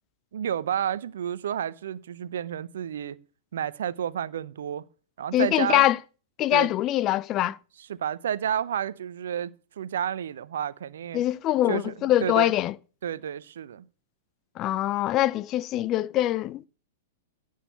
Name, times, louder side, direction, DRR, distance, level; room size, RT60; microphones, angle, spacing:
voice 1, 0.3-3.2 3.5-4.8 5.2-5.9 6.5-6.7 7.9-11.2 11.7-11.9 12.2-12.5 13.0-13.8, right 9 dB, 60° right, 0.7 m, -30 dB
voice 2, 5.3-6.0 6.4-7.6 11.1-12.7 14.6-16.6, left 14 dB, 30° left, 0.5 m, -23 dB
17.0 x 6.5 x 6.9 m
figure-of-eight pair, 105°, 0 cm